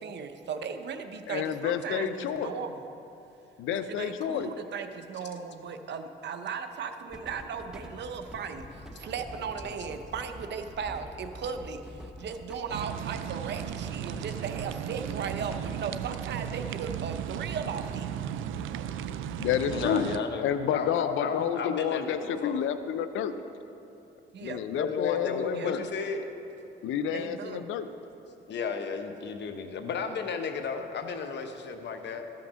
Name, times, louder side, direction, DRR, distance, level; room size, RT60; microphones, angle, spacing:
voice 1, 0.0-2.9 3.7-18.1 24.3-24.6 25.5-25.7 27.1-27.6, right 6 dB, 60° right, 8 dB, 0.8 m, -37 dB
voice 2, 1.3-2.5 3.6-4.5 19.4-20.1 20.4-23.3 24.4-25.8 26.8-27.9, left 8 dB, 85° left, 11 dB, 0.6 m, -30 dB
sound 1, 7.1-15.8, equal, 5° right, 0.8 m, -46 dB
sound 2, 12.7-20.2, right 9 dB, 85° right, 0.4 m, -35 dB
voice 3, 19.7-22.6 24.7-26.2 28.5-32.5, left 5 dB, 60° left, 6 dB, 1.0 m, -33 dB
13.0 x 5.8 x 6.3 m, 2.8 s
cardioid pair, 90°, 20 cm